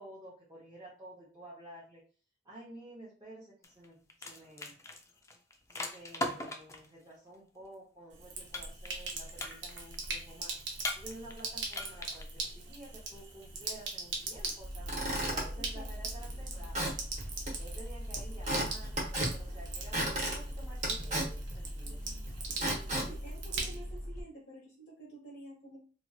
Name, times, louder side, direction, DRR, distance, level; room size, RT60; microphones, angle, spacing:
voice 1, 0.0-2.0 2.4-4.7 5.7-10.5 10.9-17.0 17.6-22.0 22.6-23.1, right 1 dB, 20° right, -7 dB, 0.8 m, -51 dB
sound 1, 3.6-3.8 4.1-6.9 8.5-9.1 9.4-9.9 10.8-11.4 11.7-12.2, left 2 dB, 15° left, 0.3 m, -38 dB
Sink (filling or washing), 8.1-24.0, right 4 dB, 80° right, 0.7 m, -41 dB
Squeak / Wood, 14.6-24.2, right 1 dB, 40° right, 1.1 m, -36 dB
voice 2, 15.6-16.1 23.1-25.8, right 1 dB, 70° left, -5 dB, 0.9 m, -50 dB
3.0 x 2.8 x 2.3 m, 0.39 s
head